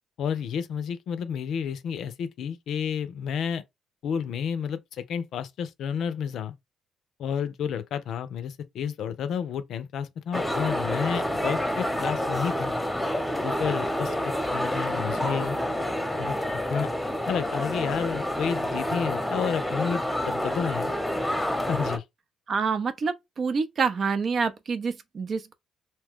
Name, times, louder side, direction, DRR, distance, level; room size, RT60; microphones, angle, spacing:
voice 1, 0.2-3.6 4.0-6.5 7.2-12.8 13.4-15.6 16.2-16.4 16.7-16.9 17.2-20.9 21.7-22.0, left 7 dB, 70° left, 0.5 m, -31 dB
sound 1, 10.3-22.0, left 1 dB, 5° left, 0.9 m, -28 dB
voice 2, 22.5-25.5, right 5 dB, 50° right, 0.5 m, -27 dB
2.7 x 2.2 x 3.6 m
supercardioid pair, 55°, 0 cm